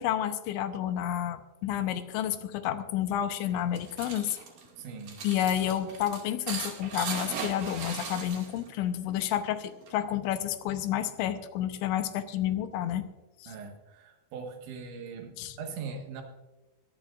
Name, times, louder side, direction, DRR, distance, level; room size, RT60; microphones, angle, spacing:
voice 1, 0.0-4.4 5.2-13.0 13.4-13.5 15.4-15.6, left 11 dB, 90° left, 9 dB, 3.2 m, -30 dB
sound 1, 3.5-8.8 9.0-10.0, right 5 dB, 55° right, 3.7 m, -38 dB
voice 2, 4.7-5.2 13.5-16.2, right 5 dB, 75° right, 4 dB, 3.9 m, -41 dB
23.0 x 15.0 x 2.5 m, 1.1 s
omnidirectional pair, 5.4 m